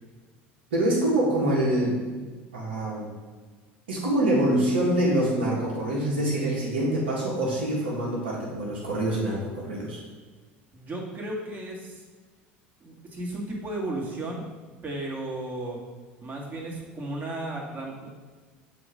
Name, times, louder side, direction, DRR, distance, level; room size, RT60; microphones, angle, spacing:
voice 1, 0.7-2.0 2.5-3.1 3.9-10.0, right 1 dB, 85° right, -5 dB, 1.6 m, -25 dB
voice 2, 10.7-12.0 12.8-14.5 14.8-15.8 16.2-18.2, right 1 dB, 30° right, -1 dB, 1.9 m, -34 dB
6.9 x 3.1 x 5.1 m, 1.4 s
hypercardioid pair, 80°, 6 cm